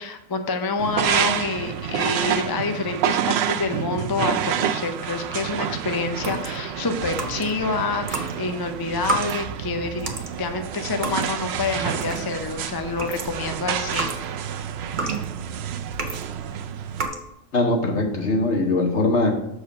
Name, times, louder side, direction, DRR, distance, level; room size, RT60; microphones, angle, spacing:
voice 1, 0.0-10.1 10.4-14.2, left 4 dB, 35° left, 7 dB, 0.3 m, -27 dB
sound 1, 0.8-17.0, right 9 dB, 65° right, 0.7 m, -28 dB
sound 2, 6.2-7.6 8.0-12.5 12.8-16.3 16.9-17.3, right 2 dB, 40° right, 1.2 m, -32 dB
voice 2, 17.5-19.3, left 2 dB, 55° left, 1 dB, 1.7 m, -21 dB
6.9 x 4.9 x 5.1 m, 0.87 s
omnidirectional pair, 1.4 m